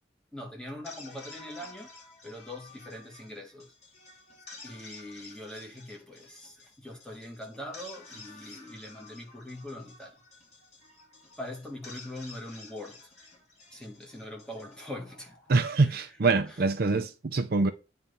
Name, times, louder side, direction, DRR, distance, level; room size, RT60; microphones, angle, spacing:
voice 1, 0.3-1.9 2.2-3.7 4.6-10.2 11.4-13.1 13.7-15.4 15.7-16.7, left 1 dB, 5° left, 1.7 m, -42 dB
sound 1, 0.7-15.9, left 3 dB, 35° left, 2.6 m, -51 dB
voice 2, 15.5-17.7, right 3 dB, 55° right, 0.6 m, -25 dB
9.0 x 3.3 x 5.4 m
head